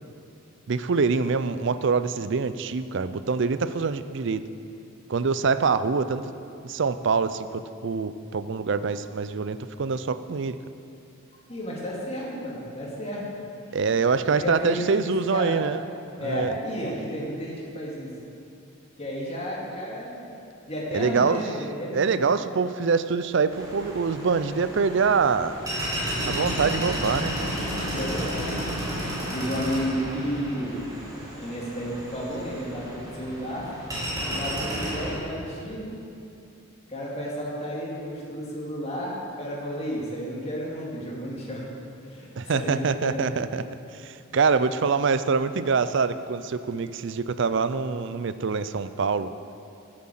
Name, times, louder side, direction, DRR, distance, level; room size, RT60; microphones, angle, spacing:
voice 1, 0.7-4.4 5.1-6.3 6.6-10.6 13.7-15.8 16.2-16.5 20.9-21.4 21.9-25.6 26.2-27.5 42.4-43.6 44.0-49.3, right 5 dB, 55° right, 13 dB, 0.5 m, -25 dB
voice 2, 11.5-13.2 14.3-15.6 16.2-18.1 19.0-20.3 20.7-22.3 27.6-30.8 31.4-33.7 34.2-35.9 36.9-41.7 42.0-42.3 42.5-43.4, equal, 30° left, -4 dB, 2.4 m, -32 dB
sound 1, 23.5-35.2, equal, 15° right, 2.7 m, -32 dB
13.0 x 7.6 x 7.6 m, 2.6 s
head